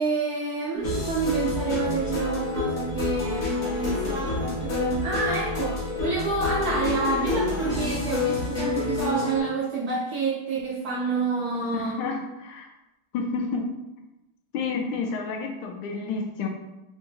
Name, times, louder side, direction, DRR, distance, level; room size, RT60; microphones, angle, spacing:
voice 1, 0.0-12.0, right 4 dB, 75° right, -5 dB, 0.8 m, -28 dB
sound 1, 0.7-9.4, left 4 dB, 45° left, 1.1 m, -28 dB
voice 2, 11.7-12.7 13.1-13.7 14.5-16.5, left 4 dB, 85° left, 3 dB, 1.5 m, -30 dB
3.5 x 2.8 x 4.5 m, 0.96 s
omnidirectional pair, 2.3 m